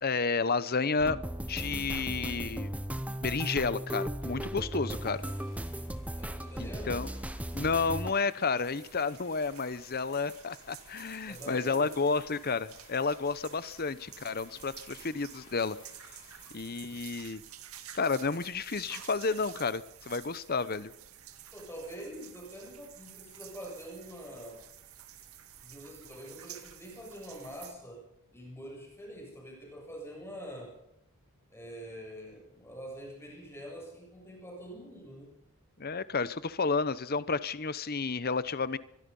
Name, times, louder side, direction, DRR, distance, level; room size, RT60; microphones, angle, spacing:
voice 1, 0.0-1.2 1.5-2.7 3.2-5.2 6.6-7.1 7.5-15.8 16.5-17.4 17.9-20.9 35.8-38.8, left 4 dB, 45° left, 15 dB, 0.9 m, -31 dB
sound 1, 1.0-8.1, right 1 dB, 5° right, 0.8 m, -37 dB
sound 2, 4.2-17.9 18.6-18.7, left 5 dB, 60° left, 7.0 m, -59 dB
voice 2, 6.2-7.0 11.3-12.3 21.5-24.6 25.6-28.1 28.3-30.8 31.5-35.3, equal, 10° left, -1 dB, 7.5 m, -45 dB
sound 3, 8.6-27.7, right 10 dB, 75° right, 2.1 m, -51 dB
24.5 x 22.0 x 5.5 m, 0.82 s
head